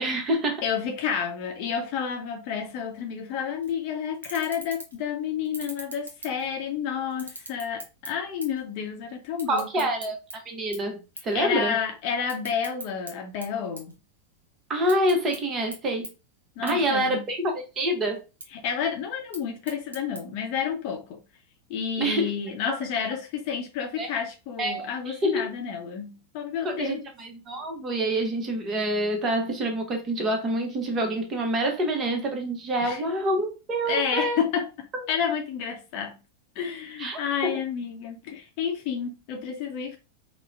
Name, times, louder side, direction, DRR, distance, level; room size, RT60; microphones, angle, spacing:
voice 1, 0.0-0.6 9.5-11.8 14.7-16.1 16.6-18.2 22.0-22.3 24.0-24.1 24.6-25.5 26.6-34.4 37.0-37.6, right 1 dB, 25° right, 0.8 m, -27 dB
voice 2, 0.6-9.9 11.3-13.9 16.6-17.3 18.5-21.2 21.7-27.1 32.8-33.0 33.9-34.7 35.1-36.2 36.6-40.0, left 7 dB, 45° left, 0.7 m, -30 dB
sound 1, 3.6-3.8 4.1-5.0 5.4-6.7 7.1-8.7 8.9-10.3 10.7-10.9 11.2-11.4 11.7-13.1 13.4-14.4 14.7-15.4 15.7-15.8 16.0-16.1 16.7-16.8 17.1-17.7 18.1-18.5 19.1-20.2, right 2 dB, 75° right, 0.8 m, -40 dB
4.1 x 2.0 x 2.4 m
figure-of-eight pair, 90°, 0 cm